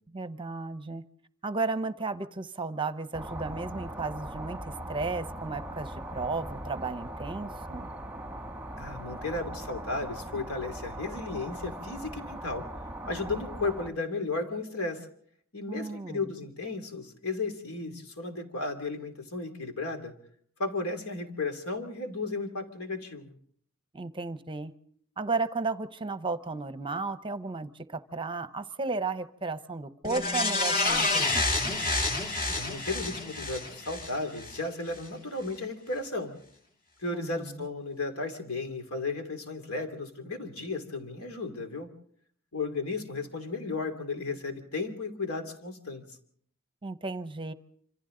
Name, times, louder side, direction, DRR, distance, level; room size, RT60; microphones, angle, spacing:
voice 1, 0.1-1.0 1.4-7.9 15.7-16.3 23.9-24.7 25.2-31.9 37.1-37.7 46.8-47.5, right 3 dB, 25° right, 12 dB, 0.8 m, -34 dB
sound 1, 3.1-13.9, right 1 dB, 5° right, 1.2 m, -40 dB
voice 2, 8.8-12.7 13.1-15.1 15.5-20.1 20.6-23.3 32.5-36.3 37.0-41.9 42.5-46.0, left 3 dB, 80° left, 6 dB, 2.7 m, -34 dB
sound 2, 30.0-34.6 35.0-35.1, left 2 dB, 40° left, 2.3 m, -29 dB
26.0 x 26.0 x 3.8 m, 0.62 s
head